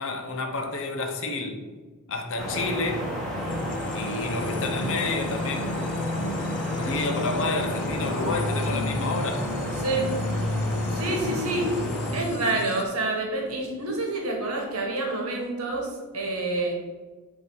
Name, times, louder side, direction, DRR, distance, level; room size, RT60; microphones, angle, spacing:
voice 1, 0.0-1.6 2.1-3.1 3.9-5.8 6.7-9.5, left 3 dB, 60° left, 4 dB, 0.9 m, -30 dB
sound 1, 2.4-12.1, equal, 5° left, 1.2 m, -32 dB
sound 2, 3.3-12.8, left 3 dB, 85° left, 0.5 m, -32 dB
voice 2, 10.9-11.7 12.1-16.8, right 2 dB, 75° right, 1 dB, 1.3 m, -28 dB
8.1 x 2.8 x 4.7 m, 1.4 s
head